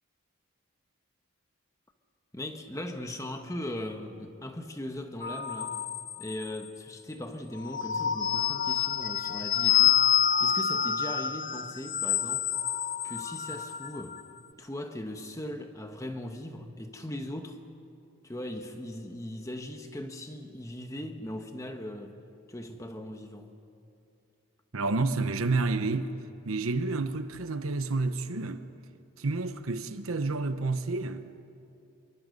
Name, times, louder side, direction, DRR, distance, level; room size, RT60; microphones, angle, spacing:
voice 1, 2.3-5.8 6.2-10.0 10.4-12.5 13.0-14.2 14.6-17.6 18.2-22.2 22.5-23.5, left 1 dB, 15° left, 1.2 m, -39 dB
sound 1, 5.2-6.7 7.6-14.2, left 9 dB, 40° left, 0.6 m, -28 dB
voice 2, 24.7-26.1 26.5-28.6 29.2-31.3, right 3 dB, 75° right, 1.0 m, -29 dB
25.5 x 23.5 x 5.4 m
head